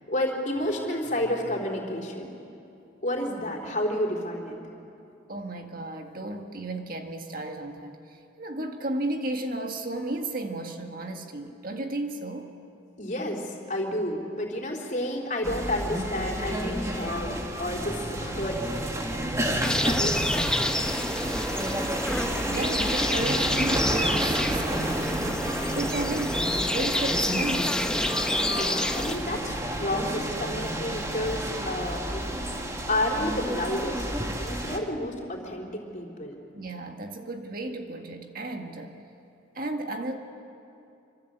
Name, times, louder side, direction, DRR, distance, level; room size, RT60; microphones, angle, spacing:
voice 1, 0.1-2.3 3.0-4.6 13.0-19.0 19.5-20.8 22.1-22.7 28.5-36.4, left 1 dB, 40° left, 0 dB, 4.1 m, -31 dB
voice 2, 5.3-12.5 22.5-25.4 25.8-27.9 36.5-39.0 39.6-40.2, right 2 dB, 45° right, 4 dB, 1.8 m, -33 dB
sound 1, 15.4-34.8, right 1 dB, 15° right, 1.7 m, -31 dB
sound 2, 19.6-29.2, left 1 dB, 5° left, 1.0 m, -28 dB
26.5 x 26.0 x 8.1 m, 2.7 s
head